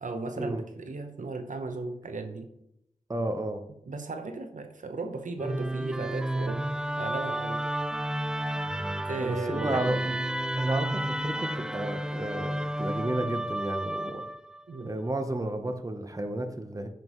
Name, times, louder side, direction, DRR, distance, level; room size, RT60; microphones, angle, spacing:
voice 1, 0.0-2.5 3.9-6.6 7.0-7.7 9.1-10.0 14.7-14.9, right 3 dB, 70° right, 7 dB, 0.8 m, -36 dB
voice 2, 3.1-3.6 9.2-10.2 10.6-14.2 14.8-16.9, right 1 dB, 25° right, 6 dB, 0.9 m, -32 dB
Musical instrument, 5.4-14.6, right 1 dB, 5° right, 0.3 m, -31 dB
10.5 x 5.8 x 3.1 m, 0.80 s
wide cardioid pair, 55°, 14 cm